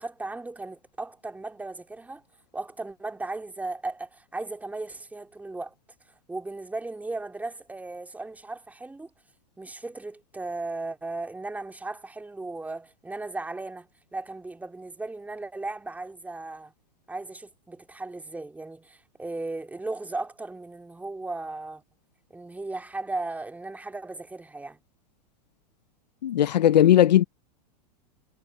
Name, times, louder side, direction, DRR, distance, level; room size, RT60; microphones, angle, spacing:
voice 1, 0.0-2.2 2.5-5.7 6.3-9.1 9.6-16.7 17.1-21.8 22.3-24.8, right 2 dB, 5° right, 3.1 m, -36 dB
voice 2, 26.2-27.2, left 11 dB, 85° left, 0.9 m, -18 dB
hypercardioid pair, 115°, 21 cm